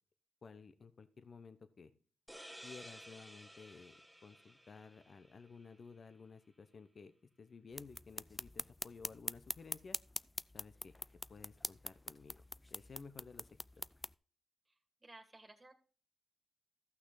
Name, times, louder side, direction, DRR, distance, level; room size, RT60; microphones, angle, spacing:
voice 1, 0.4-1.9 2.6-7.1 7.4-10.0 10.5-10.9 11.3-13.5 13.8-13.9, left 5 dB, 55° left, 12 dB, 0.9 m, -55 dB
sound 1, 2.3-5.7, equal, 5° left, 1.8 m, -55 dB
sound 2, 7.7-14.1, left 1 dB, 20° left, 0.3 m, -45 dB
voice 2, 15.0-15.7, right 2 dB, 30° right, 5 dB, 2.2 m, -56 dB
14.5 x 6.1 x 4.0 m, 0.40 s
supercardioid pair, 50°, 0 cm